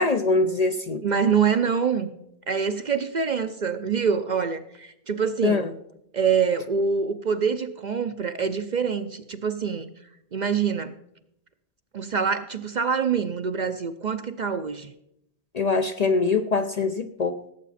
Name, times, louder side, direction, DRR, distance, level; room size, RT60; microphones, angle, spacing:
voice 1, 0.0-1.0 5.4-5.7 15.5-17.4, left 3 dB, 45° left, 8 dB, 0.6 m, -23 dB
voice 2, 1.0-2.1 2.5-5.7 6.1-9.9 10.3-10.9 11.9-14.9, right 6 dB, 50° right, 10 dB, 0.6 m, -25 dB
17.5 x 8.3 x 4.2 m, 0.77 s
omnidirectional pair, 1.2 m